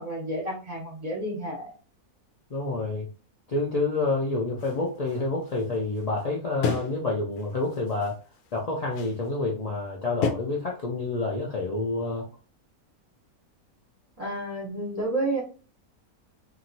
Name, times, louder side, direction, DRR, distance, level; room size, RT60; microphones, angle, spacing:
voice 1, 0.0-1.6 14.2-15.4, right 1 dB, 30° right, -3 dB, 1.1 m, -30 dB
voice 2, 2.5-3.1 3.5-8.2 8.5-12.3, left 3 dB, 65° left, -2 dB, 0.3 m, -28 dB
sound 1, 4.6-6.2 6.6-7.1 7.4-8.6 8.9-9.3 10.2-10.3, left 5 dB, 85° left, 1.1 m, -32 dB
2.9 x 2.6 x 2.6 m, 0.36 s
omnidirectional pair, 1.5 m